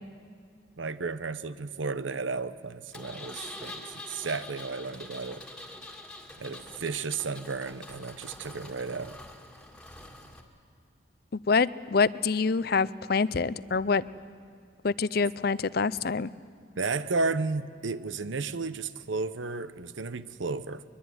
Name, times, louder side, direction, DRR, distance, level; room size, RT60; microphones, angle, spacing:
voice 1, 0.8-5.4 6.4-9.2 16.8-20.8, right 4 dB, 80° right, 14 dB, 0.9 m, -33 dB
Engine, 2.9-10.4, left 1 dB, 5° left, 2.0 m, -45 dB
voice 2, 11.5-14.0 14.8-16.3, left 4 dB, 50° left, 18 dB, 0.5 m, -26 dB
22.5 x 22.5 x 9.6 m, 2.1 s
head